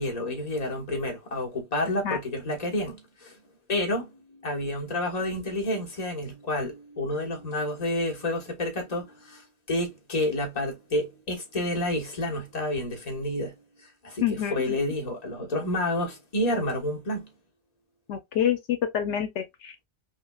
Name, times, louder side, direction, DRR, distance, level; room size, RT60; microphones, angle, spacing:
voice 1, 0.0-3.4 3.7-13.5 14.0-17.3, left 1 dB, 35° left, 1.3 m, -29 dB
voice 2, 1.9-2.2 14.2-14.8 18.1-19.8, left 9 dB, 80° left, 0.9 m, -28 dB
5.3 x 2.1 x 2.2 m
omnidirectional pair, 1.2 m